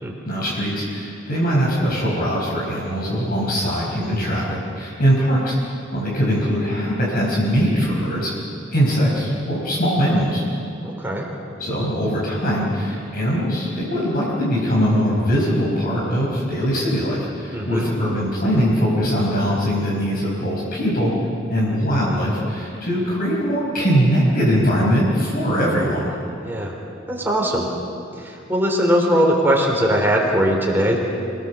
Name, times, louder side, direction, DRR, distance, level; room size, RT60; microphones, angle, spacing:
voice 1, 0.3-5.5 5.9-8.3 8.7-10.4 11.6-21.1 21.5-26.1, equal, 50° left, -4 dB, 5.1 m, -21 dB
voice 2, 10.8-11.3 17.5-17.9 26.4-26.8 27.1-27.7 28.2-31.0, equal, 10° right, -1 dB, 3.7 m, -20 dB
27.0 x 18.0 x 7.2 m, 2.7 s
head